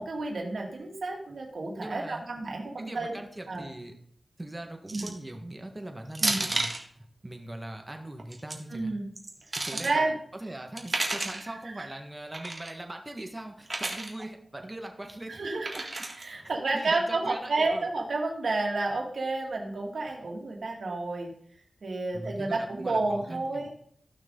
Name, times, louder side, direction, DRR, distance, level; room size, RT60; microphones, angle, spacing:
voice 1, 0.0-3.2 3.5-3.7 4.9-5.1 6.2-6.4 8.7-9.0 9.8-10.1 11.8-11.9 15.4-15.9 16.2-21.3 21.8-23.7, right 3 dB, 75° right, 0 dB, 2.4 m, -30 dB
voice 2, 1.8-2.2 2.8-4.0 4.4-6.7 6.9-8.9 9.6-15.8 16.4-17.9 22.1-23.7, right 1 dB, 20° right, 4 dB, 1.7 m, -41 dB
sound 1, 4.9-5.3 6.2-6.8 8.2-8.6 9.2-9.9 10.8-11.4 12.3-12.7 13.7-14.1 15.7-16.2, right 2 dB, 40° right, 1.8 m, -31 dB
14.0 x 6.0 x 3.9 m, 0.63 s
cardioid pair, 60°, 0 cm